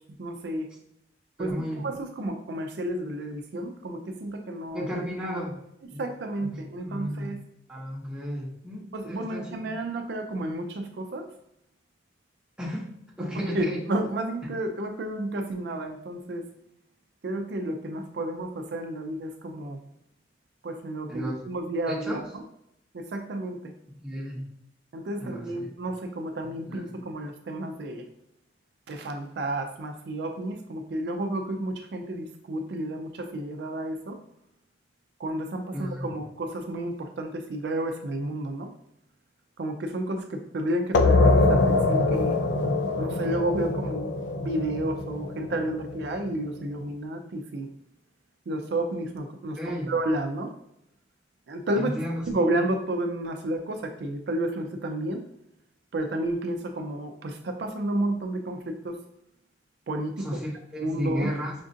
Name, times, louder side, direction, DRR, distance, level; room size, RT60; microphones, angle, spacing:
voice 1, 0.2-0.7 1.4-4.9 6.0-7.4 8.9-11.3 13.2-16.5 17.2-19.8 20.6-22.4 22.9-23.6 24.9-28.0 28.9-34.2 35.2-38.7 39.6-42.4 43.0-44.1 44.4-47.7 48.5-49.6 49.9-50.5 51.5-51.9 52.3-55.2 55.9-59.0 59.9-60.3 60.8-61.3, right 1 dB, 70° right, 5 dB, 0.4 m, -31 dB
voice 2, 1.4-1.9 4.7-5.6 5.9-6.0 6.4-7.4 7.7-9.8 12.6-12.9 13.2-13.8 21.1-21.3 21.9-22.2 24.0-24.4 25.2-25.6 26.7-26.8 35.7-36.1 49.6-49.9 51.8-52.2 60.2-61.5, equal, 5° right, -4 dB, 0.8 m, -34 dB
sound 1, 40.9-46.3, left 2 dB, 75° left, 0.4 m, -23 dB
5.2 x 2.4 x 2.6 m, 0.79 s
head